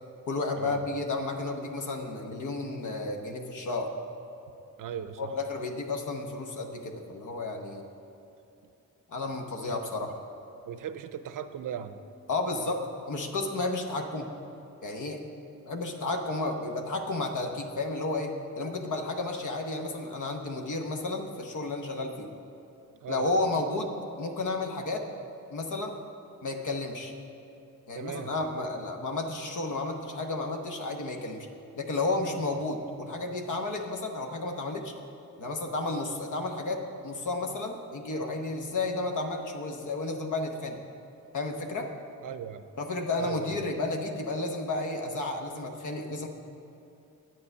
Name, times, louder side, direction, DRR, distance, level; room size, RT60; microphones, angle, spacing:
voice 1, 0.3-3.9 5.2-7.8 9.1-10.2 12.3-12.8 13.1-14.3 14.8-15.2 15.7-22.3 23.1-23.9 24.2-25.0 25.5-25.9 26.4-27.1 27.9-31.5 31.8-34.9 35.4-40.8 41.3-41.9 42.8-46.3, left 2 dB, 70° left, 3 dB, 1.0 m, -32 dB
voice 2, 4.8-5.3 9.7-9.9 10.7-12.0 23.0-23.3 27.9-28.3 42.2-42.6 43.2-43.5, right 8 dB, 85° right, 11 dB, 0.6 m, -38 dB
9.1 x 8.6 x 5.5 m, 2.8 s
wide cardioid pair, 115°, 31 cm